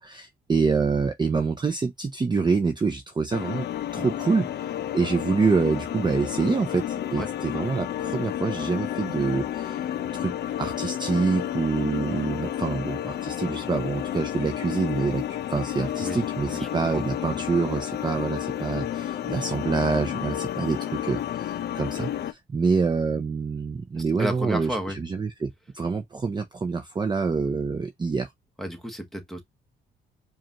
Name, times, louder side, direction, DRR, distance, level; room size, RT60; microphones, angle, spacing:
voice 1, 0.0-3.7 3.9-9.8 10.1-28.3, right 4 dB, 20° right, 0.5 m, -26 dB
sound 1, 3.3-22.3, left 11 dB, 55° left, 0.5 m, -31 dB
voice 2, 15.9-16.7 16.9-17.0 24.0-25.0 28.6-29.4, right 1 dB, ahead, 1.2 m, -32 dB
4.9 x 2.5 x 2.9 m
cardioid pair, 90°, 20 cm